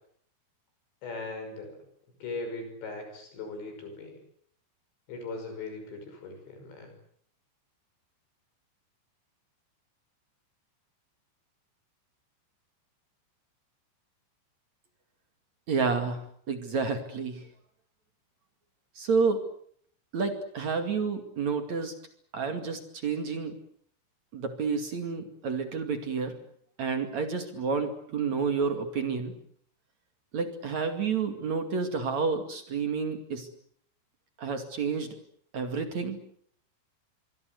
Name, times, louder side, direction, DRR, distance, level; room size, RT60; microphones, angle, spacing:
voice 1, 1.0-1.8 2.2-4.2 5.1-6.9, left 3 dB, 65° left, 6 dB, 8.1 m, -39 dB
voice 2, 15.7-17.5 19.0-19.4 20.1-21.9 22.3-23.5 24.3-26.4 26.8-29.3 30.3-33.5 34.4-35.1 35.5-36.2, right 5 dB, 45° right, 7 dB, 2.9 m, -30 dB
25.5 x 24.0 x 8.0 m, 0.63 s
omnidirectional pair, 5.6 m